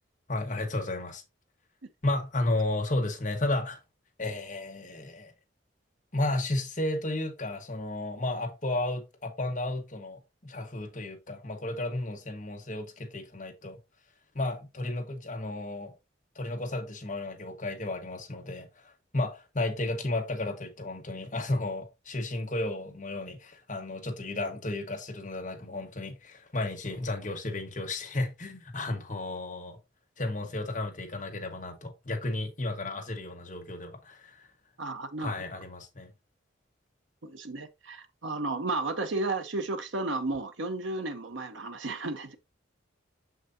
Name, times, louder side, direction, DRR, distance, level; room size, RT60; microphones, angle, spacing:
voice 1, 0.3-1.2 2.0-3.8 4.2-5.3 6.1-13.8 14.3-15.9 16.3-29.8 30.2-34.5 35.2-36.1, left 2 dB, 40° left, 1.4 m, -33 dB
voice 2, 34.8-35.3 37.2-42.4, right 2 dB, 75° right, 0.9 m, -33 dB
6.7 x 6.3 x 2.7 m
head